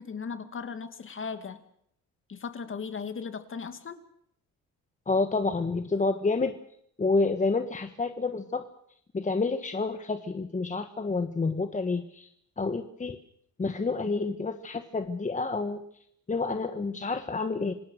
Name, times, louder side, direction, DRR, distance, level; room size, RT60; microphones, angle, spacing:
voice 1, 0.0-1.6 2.3-4.0, left 5 dB, 40° left, 9 dB, 2.5 m, -37 dB
voice 2, 5.1-6.5 7.0-8.6 9.1-12.3 12.6-13.2 13.6-15.8 16.3-17.7, left 3 dB, 25° left, 8 dB, 1.5 m, -29 dB
27.0 x 19.0 x 6.6 m, 0.69 s
cardioid pair, 90°, 30 cm